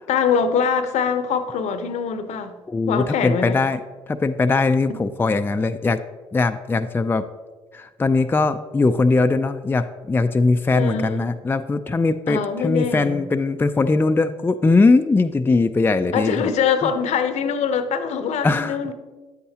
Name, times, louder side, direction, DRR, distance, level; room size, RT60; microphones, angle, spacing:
voice 1, 0.1-2.6 2.9-3.6 4.9-5.0 10.7-11.2 12.3-13.2 16.1-18.9, left 6 dB, 65° left, 10 dB, 0.7 m, -23 dB
voice 2, 2.7-3.8 4.1-6.0 6.3-7.2 7.7-16.5 16.8-16.9 18.4-18.8, left 3 dB, 15° left, 8 dB, 0.4 m, -20 dB
9.5 x 8.3 x 2.8 m, 1.3 s
hypercardioid pair, 55°, 12 cm